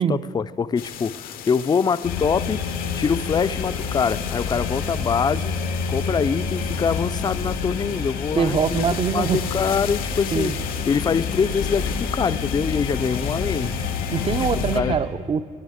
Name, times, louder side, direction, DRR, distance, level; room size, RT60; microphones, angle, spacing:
voice 1, 0.0-2.6 2.9-5.5 5.9-8.8 9.1-10.5 10.9-13.7 14.3-14.4 14.7-15.0, left 6 dB, 25° left, 15 dB, 0.4 m, -24 dB
sound 1, 0.8-14.8, left 10 dB, 65° left, 0.6 m, -36 dB
sound 2, 2.0-15.0, left 5 dB, 85° left, 1.3 m, -28 dB
voice 2, 8.4-9.4 10.3-10.6 14.1-15.5, right 6 dB, 35° right, 14 dB, 0.5 m, -23 dB
18.5 x 10.0 x 3.6 m, 2.1 s
hypercardioid pair, 50°, 16 cm